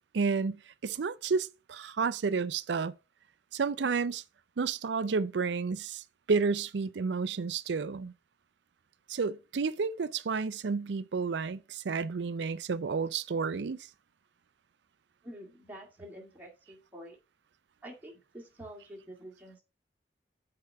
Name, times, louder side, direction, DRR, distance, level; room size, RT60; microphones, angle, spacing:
voice 1, 0.1-2.9 3.5-4.2 4.6-8.1 9.1-13.9, right 5 dB, 80° right, 0.5 m, -31 dB
voice 2, 15.2-17.2 17.8-19.6, equal, 10° right, 2.0 m, -47 dB
6.7 x 4.7 x 5.3 m
head